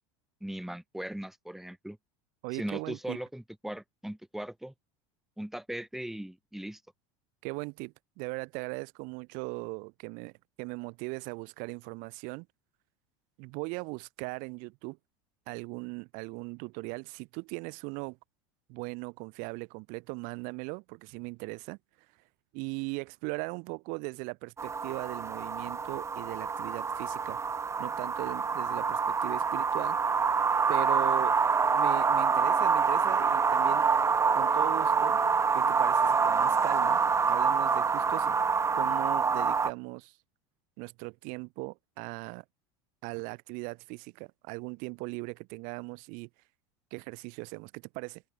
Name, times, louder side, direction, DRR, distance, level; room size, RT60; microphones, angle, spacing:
voice 1, 0.4-2.0 2.5-4.7 5.4-6.8, right 1 dB, ahead, 1.9 m, -39 dB
voice 2, 2.4-3.2 7.4-12.5 13.4-15.0 15.5-18.2 18.7-21.8 22.5-27.4 27.8-30.0 30.7-31.4 31.7-33.9 34.3-35.2 35.5-37.0 37.3-38.4 38.7-40.2 40.8-42.4 43.0-46.3 46.9-48.2, right 31 dB, 65° right, 2.0 m, -39 dB
sound 1, 24.6-39.7, right 5 dB, 20° right, 0.9 m, -26 dB
open air
supercardioid pair, 110°, 15 cm